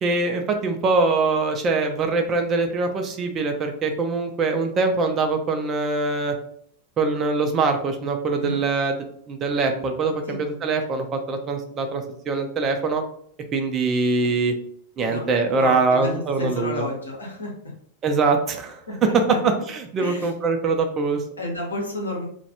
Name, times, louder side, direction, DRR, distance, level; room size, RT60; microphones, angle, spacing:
voice 1, 0.0-6.4 7.0-9.0 9.3-13.0 13.5-14.5 15.0-16.9 18.0-18.8 19.4-21.2, right 3 dB, 30° right, 5 dB, 0.4 m, -23 dB
voice 2, 15.0-17.5 18.9-19.1 20.0-20.3 21.4-22.3, left 1 dB, 75° left, -1 dB, 0.7 m, -31 dB
2.2 x 2.1 x 2.9 m, 0.64 s
figure-of-eight pair, 90°, 0 cm